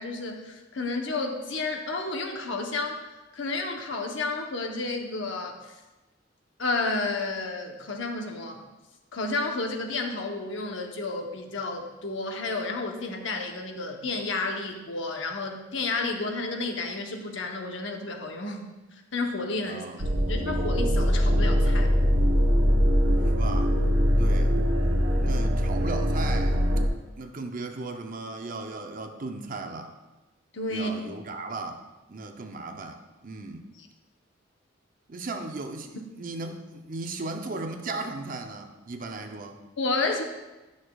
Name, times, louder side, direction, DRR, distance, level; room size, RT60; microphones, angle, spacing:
voice 1, 0.0-3.0 3.3-5.7 6.6-8.7 9.1-18.7 19.1-19.9 20.3-21.9 30.5-30.9 39.8-40.2, left 3 dB, 65° left, 3 dB, 0.9 m, -31 dB
voice 2, 19.7-20.1 23.2-23.8 24.2-24.6 25.2-26.6 27.2-29.9 30.7-31.8 32.1-33.7 35.1-39.6, right 3 dB, 45° right, 5 dB, 0.6 m, -36 dB
sound 1, 20.0-26.9, equal, 75° right, 0.9 m, -22 dB
11.0 x 6.4 x 2.3 m, 1.1 s
head